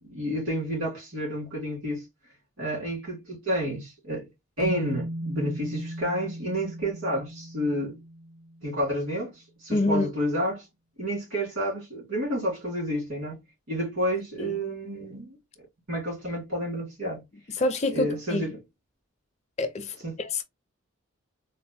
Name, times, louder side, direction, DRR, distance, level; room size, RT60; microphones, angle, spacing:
voice 1, 0.0-2.0 2.6-4.3 4.6-8.0 8.6-10.7 11.0-13.4 13.7-15.4 15.9-17.2 17.9-18.6 20.0-20.1, equal, 75° right, 2.3 m, -30 dB
sound 1, 4.6-8.9, right 1 dB, 55° right, 0.8 m, -37 dB
voice 2, 9.7-10.1 14.4-14.6 17.6-18.4 19.6-20.4, left 2 dB, 30° left, 0.4 m, -27 dB
4.0 x 2.0 x 2.6 m
head